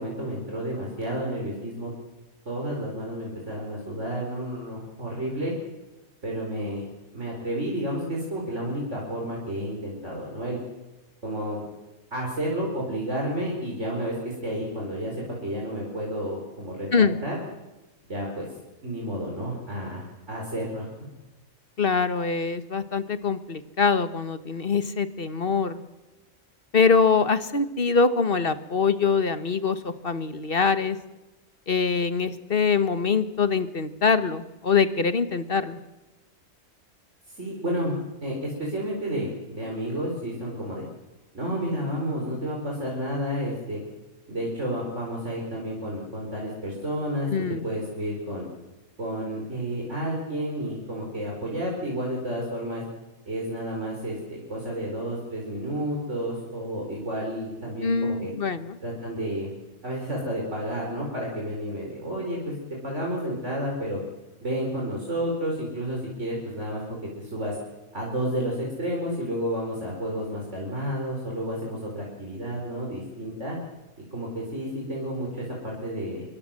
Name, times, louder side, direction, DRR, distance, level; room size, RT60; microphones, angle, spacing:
voice 1, 0.0-1.9 2.4-5.5 6.2-6.8 7.1-10.6 11.2-11.6 12.1-15.1 15.4-17.4 18.1-18.5 18.8-20.9 37.4-37.9 38.2-40.8 41.3-43.8 44.3-47.3 47.6-48.5 49.0-52.8 53.3-58.3 58.8-59.5 59.8-62.5 62.8-64.0 64.4-67.5 67.9-73.6 74.1-76.2, equal, 65° right, -2 dB, 5.1 m, -31 dB
voice 2, 21.8-25.8 26.7-31.0 31.7-35.8 47.3-47.7 57.8-58.8, left 5 dB, 45° left, 11 dB, 1.5 m, -24 dB
26.0 x 22.5 x 7.6 m, 1.1 s
omnidirectional pair, 1.3 m